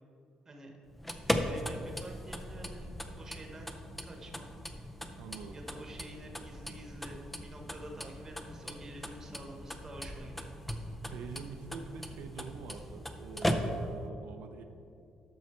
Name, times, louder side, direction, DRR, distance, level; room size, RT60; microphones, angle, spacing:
sound 1, 0.9-14.1, equal, 5° left, 0.5 m, -38 dB
voice 1, 1.3-2.9 3.1-3.8 4.0-4.5 5.5-10.5, right 1 dB, 20° right, 1 dB, 1.2 m, -48 dB
voice 2, 5.2-5.6 10.9-14.6, right 5 dB, 85° right, 5 dB, 0.6 m, -45 dB
12.0 x 6.4 x 4.3 m, 2.6 s
cardioid pair, 170°, 2 cm